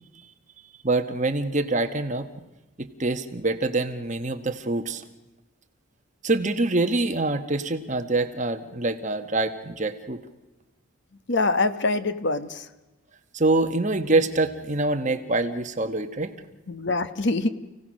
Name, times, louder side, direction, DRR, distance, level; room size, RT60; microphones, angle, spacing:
voice 1, 0.8-2.3 2.8-5.0 6.2-10.2 13.3-16.3, right 2 dB, 35° right, 8 dB, 1.2 m, -25 dB
voice 2, 11.3-12.6 16.7-17.5, left 3 dB, 55° left, 12 dB, 1.0 m, -24 dB
29.5 x 17.0 x 6.4 m, 1.1 s
head